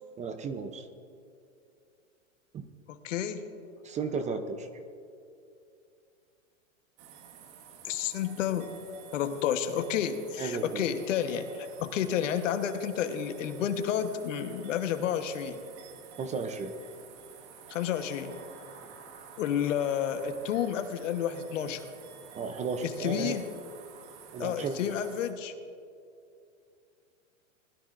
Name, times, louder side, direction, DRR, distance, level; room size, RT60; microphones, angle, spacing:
voice 1, 0.2-0.9 2.5-2.6 3.8-4.7 10.4-10.9 16.2-16.7 18.9-19.0 22.3-23.4 24.3-24.8, right 5 dB, 20° right, 8 dB, 0.6 m, -34 dB
voice 2, 2.9-3.4 7.8-8.7 9.1-15.6 17.7-18.4 19.4-21.9 22.8-23.5 24.4-25.5, left 9 dB, 70° left, 8 dB, 1.2 m, -30 dB
sound 1, 7.0-25.3, right 7 dB, 55° right, 1.7 m, -51 dB
20.0 x 12.5 x 2.5 m, 2.5 s
hypercardioid pair, 125°, 39 cm